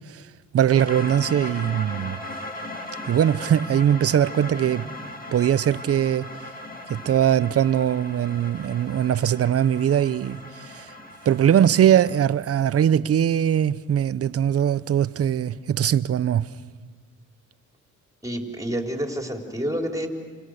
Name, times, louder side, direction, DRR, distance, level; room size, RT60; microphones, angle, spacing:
voice 1, 0.5-2.2 3.1-5.0 5.3-6.3 6.9-10.9 11.2-16.5, right 10 dB, 50° right, 0.8 m, -21 dB
sound 1, 0.8-12.2, left 1 dB, 30° left, 6.1 m, -38 dB
voice 2, 18.2-20.1, equal, 10° right, 4.3 m, -28 dB
28.5 x 28.0 x 6.7 m
cardioid pair, 90°, 30 cm